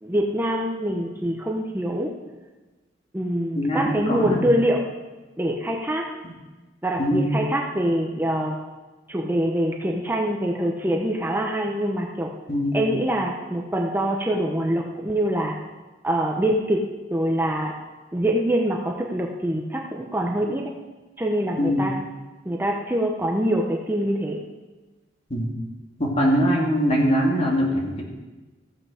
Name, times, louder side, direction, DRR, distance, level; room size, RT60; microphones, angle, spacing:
voice 1, 0.0-2.1 3.1-4.8 5.4-6.0 6.8-8.6 9.1-12.3 12.7-15.6 16.0-16.8 17.1-17.7 18.1-20.7 21.2-21.9 22.4-24.4, right 1 dB, 10° right, 0 dB, 0.8 m, -24 dB
voice 2, 3.6-4.5 7.0-7.3 12.5-12.9 21.6-21.9 25.3-25.5 26.0-28.0, equal, 35° left, -1 dB, 2.2 m, -22 dB
15.0 x 7.8 x 5.0 m, 1.2 s
head